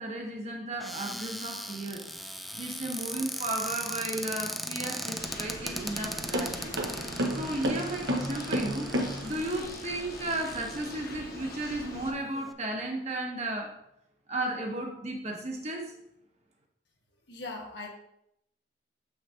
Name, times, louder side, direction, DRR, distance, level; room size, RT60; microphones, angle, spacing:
voice 1, 0.0-2.0 2.6-6.7 7.3-13.8 14.3-15.9, right 1 dB, 40° right, 1 dB, 1.2 m, -34 dB
Cupboard open or close, 0.8-11.2 11.8-11.9 12.2-12.5, equal, ahead, 0.3 m, -39 dB
sound 1, 4.8-9.6, equal, 80° right, 1.3 m, -33 dB
sound 2, 5.2-12.1, left 1 dB, 55° left, 1.2 m, -43 dB
voice 2, 17.3-17.9, left 2 dB, 80° left, 0 dB, 1.5 m, -39 dB
7.2 x 5.9 x 2.9 m, 0.76 s
head